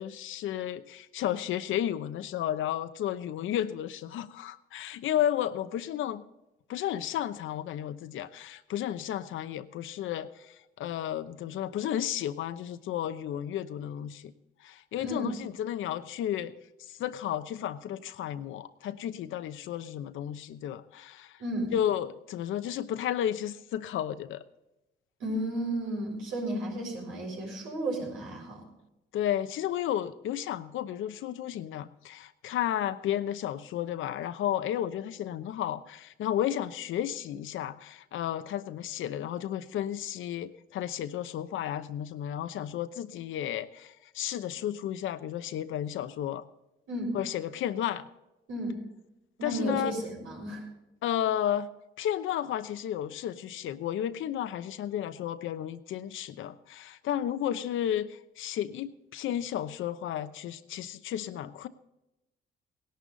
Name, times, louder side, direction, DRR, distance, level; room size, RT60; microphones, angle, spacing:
voice 1, 0.0-6.2 6.7-14.3 14.6-16.5 16.8-21.4 21.7-24.4 29.1-46.4 47.1-48.0 49.4-49.9 51.0-51.7 52.0-61.7, left 11 dB, 80° left, 12 dB, 0.9 m, -33 dB
voice 2, 15.0-15.3 21.4-21.7 25.2-28.7 46.9-47.2 48.5-48.8 49.4-50.6, right 1 dB, 90° right, -2 dB, 6.7 m, -33 dB
18.0 x 11.5 x 4.0 m, 0.94 s
cardioid pair, 90°, 20 cm